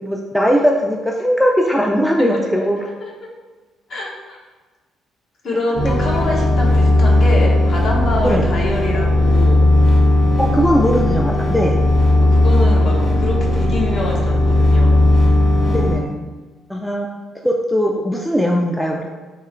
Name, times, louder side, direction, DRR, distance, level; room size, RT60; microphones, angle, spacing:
voice 1, 0.0-2.8 8.2-8.4 10.4-11.8 15.7-16.1 16.7-17.1 17.4-19.1, equal, ahead, 0 dB, 0.3 m, -19 dB
voice 2, 2.2-2.6 3.9-4.4 5.4-9.7 12.2-15.0, left 2 dB, 50° left, -2 dB, 1.1 m, -25 dB
sound 1, 5.7-16.0, left 1 dB, 30° left, 1.3 m, -15 dB
3.8 x 2.9 x 4.3 m, 1.3 s
cardioid pair, 135°, 0 cm